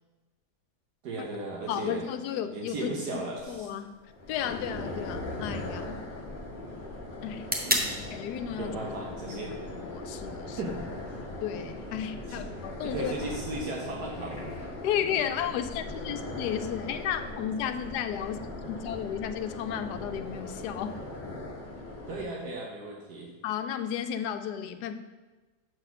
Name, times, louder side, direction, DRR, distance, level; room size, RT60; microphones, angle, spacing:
voice 1, 1.0-2.1 2.5-3.7 7.6-7.9 8.6-9.5 10.6-11.0 12.2-12.4 12.8-14.4 22.1-23.3, right 2 dB, 80° right, -1 dB, 1.4 m, -36 dB
voice 2, 1.7-3.2 3.5-4.0 4.3-6.1 7.2-7.5 8.1-8.8 9.3-9.6 9.8-10.6 11.4-13.1 14.8-18.4 18.7-21.0 23.4-24.9, left 9 dB, 85° left, 9 dB, 1.1 m, -33 dB
sound 1, 3.4-11.4, equal, 15° right, 0.3 m, -38 dB
sound 2, 4.0-22.2, left 2 dB, 35° left, 1.0 m, -39 dB
7.4 x 4.0 x 5.6 m, 1.3 s
omnidirectional pair, 1.7 m